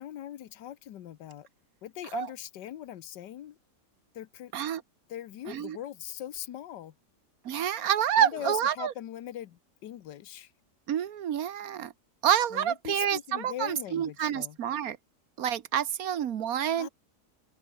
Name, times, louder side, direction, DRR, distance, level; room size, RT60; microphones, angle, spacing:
voice 1, 0.0-1.5 1.8-3.6 4.1-4.5 5.1-6.9 8.2-10.5 12.5-14.6 16.7-16.9, left 11 dB, 90° left, 1.6 m, -41 dB
voice 2, 5.5-5.8 7.4-8.9 10.9-11.9 12.2-15.0 15.4-16.9, right 9 dB, 60° right, 1.4 m, -28 dB
open air
omnidirectional pair, 1.8 m